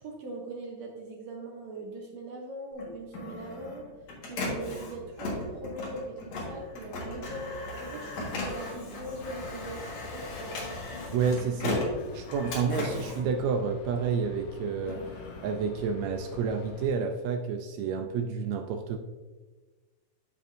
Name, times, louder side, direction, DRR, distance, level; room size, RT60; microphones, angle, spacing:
voice 1, 0.0-3.9 4.2-10.9, right 2 dB, 70° right, 0 dB, 1.9 m, -41 dB
Printer, 2.7-14.2 14.6-16.5, left 2 dB, 60° left, 2.8 m, -37 dB
sound 1, 9.0-16.9, left 5 dB, 80° left, 1.6 m, -46 dB
voice 2, 11.1-15.1 15.4-19.0, right 5 dB, 90° right, 4 dB, 1.5 m, -30 dB
12.5 x 5.1 x 2.6 m, 1.3 s
omnidirectional pair, 3.7 m